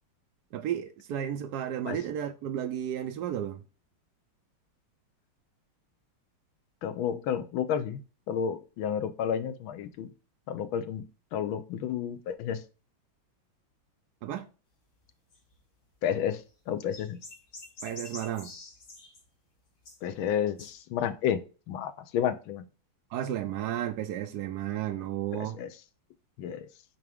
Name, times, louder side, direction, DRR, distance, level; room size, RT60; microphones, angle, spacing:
voice 1, 0.5-3.6 14.2-14.5 17.8-18.5 23.1-25.6, right 10 dB, 75° right, 0.9 m, -33 dB
voice 2, 6.8-8.0 8.3-10.1 10.5-11.0 11.3-12.6 16.0-17.2 20.0-22.7 25.3-25.7 26.4-26.7, left 8 dB, 75° left, 1.5 m, -31 dB
sound 1, 15.3-15.6 16.2-16.3 16.5-16.6 16.9-19.2 19.8-20.3 20.6-20.7, left 3 dB, 60° left, 3.1 m, -46 dB
8.2 x 3.6 x 3.5 m
omnidirectional pair, 2.3 m